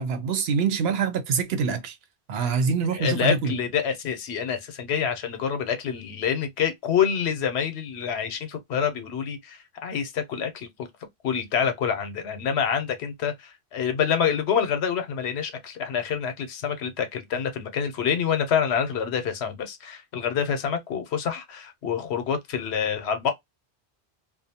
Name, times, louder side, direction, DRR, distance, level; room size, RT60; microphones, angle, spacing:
voice 1, 0.0-2.0 2.3-3.5, right 5 dB, 70° right, 0.8 m, -25 dB
voice 2, 3.0-10.7 11.2-23.3, left 7 dB, 80° left, 0.9 m, -27 dB
2.6 x 2.0 x 2.7 m
omnidirectional pair, 1.1 m